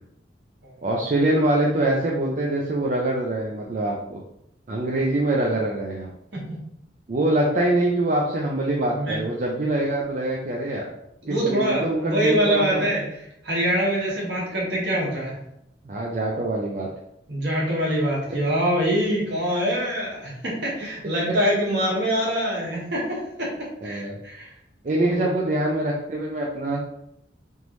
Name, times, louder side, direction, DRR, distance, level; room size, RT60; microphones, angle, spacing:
voice 1, 0.8-4.2 4.7-6.1 7.1-10.9 11.3-12.8 15.8-16.9 18.3-18.4 21.3-21.4 23.8-24.2 24.8-26.8, right 1 dB, 45° right, -2 dB, 0.5 m, -24 dB
voice 2, 11.2-13.1 13.4-15.4 17.3-23.5 23.8-24.5 25.0-25.3, equal, 60° right, -4 dB, 1.6 m, -24 dB
3.9 x 3.6 x 3.1 m, 0.79 s
head